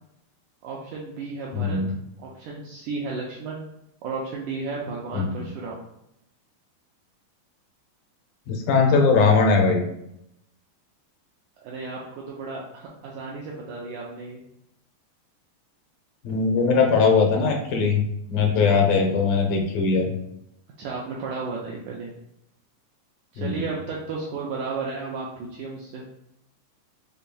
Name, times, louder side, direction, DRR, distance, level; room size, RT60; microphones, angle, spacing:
voice 1, 0.6-1.8 2.2-3.6 4.0-5.8 11.6-14.4 18.5-18.9 20.8-22.1 23.3-26.0, right 4 dB, 90° right, -3 dB, 1.7 m, -33 dB
voice 2, 1.5-1.9 5.1-5.5 8.5-9.8 16.2-20.1 23.4-23.7, left 4 dB, 80° left, 1 dB, 2.4 m, -20 dB
6.6 x 2.6 x 2.2 m, 0.80 s
omnidirectional pair, 4.0 m